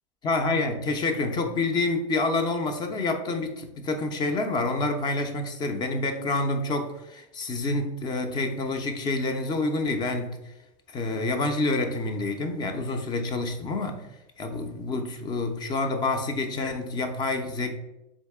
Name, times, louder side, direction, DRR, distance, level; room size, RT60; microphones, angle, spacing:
voice 1, 0.2-10.4 10.9-14.1 14.4-17.7, left 2 dB, 25° left, 0.5 m, -28 dB
3.8 x 3.6 x 3.4 m
supercardioid pair, 135°, 17 cm